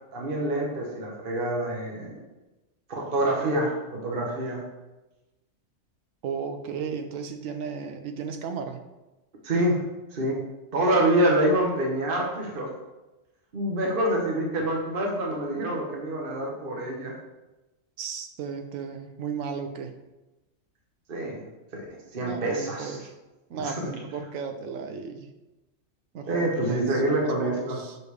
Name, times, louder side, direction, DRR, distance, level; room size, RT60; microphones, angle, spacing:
voice 1, 0.1-2.1 2.9-4.7 9.4-9.8 10.1-10.4 10.7-12.7 13.5-17.2 21.1-21.4 21.7-23.0 23.5-23.9 26.3-27.8, right 1 dB, 45° right, -1 dB, 1.1 m, -26 dB
voice 2, 6.2-8.8 18.0-20.0 22.2-23.1 23.5-25.3 26.1-28.0, right 6 dB, 75° right, 6 dB, 1.1 m, -35 dB
7.0 x 5.1 x 3.3 m, 1.0 s
omnidirectional pair, 1.4 m